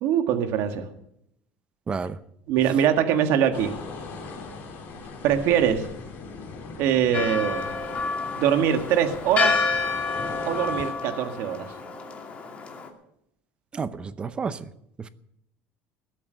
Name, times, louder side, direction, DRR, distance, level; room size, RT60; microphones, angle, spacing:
voice 1, 0.0-0.9 2.5-3.7 5.2-5.9 6.8-7.7 8.4-9.6 10.5-11.7, right 9 dB, 60° right, 6 dB, 1.8 m, -23 dB
voice 2, 1.9-2.2 13.7-14.6, right 5 dB, 20° right, 14 dB, 0.7 m, -30 dB
sound 1, 3.5-10.9, left 4 dB, 40° left, 4.3 m, -39 dB
Church bell, 7.1-12.9, left 4 dB, 25° left, 2.4 m, -29 dB
19.5 x 8.6 x 6.7 m, 0.74 s
cardioid pair, 155°, 5 cm